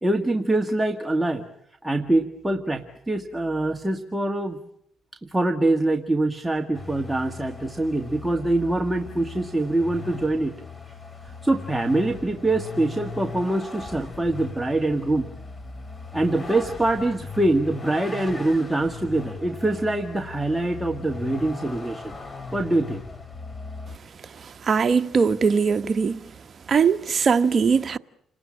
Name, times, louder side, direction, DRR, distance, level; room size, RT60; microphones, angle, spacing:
voice 1, 0.0-1.5 1.8-4.6 5.2-10.5 11.4-15.3 16.1-22.2 22.5-23.0, right 2 dB, 10° right, 1.8 m, -24 dB
Vehicle, 6.7-24.0, left 4 dB, 25° left, 3.1 m, -38 dB
voice 2, 24.4-26.3 26.7-28.0, right 5 dB, 45° right, 1.1 m, -21 dB
29.0 x 20.0 x 8.8 m
cardioid pair, 90°, 0 cm